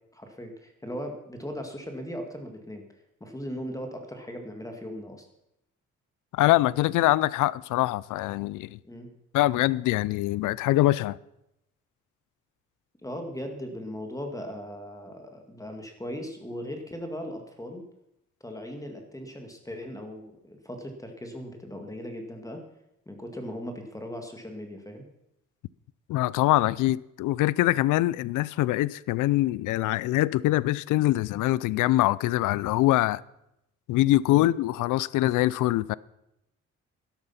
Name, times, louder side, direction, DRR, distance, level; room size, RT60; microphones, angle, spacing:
voice 1, 0.1-2.8 3.2-5.3 8.8-9.1 13.0-17.8 18.4-22.6 23.1-25.0 34.3-34.5, equal, 10° left, 2.2 m, -38 dB
voice 2, 6.3-8.8 9.3-11.2 26.1-33.2 33.9-36.0, left 16 dB, 85° left, 0.5 m, -24 dB
12.5 x 11.5 x 5.8 m
cardioid pair, 90°, 30 cm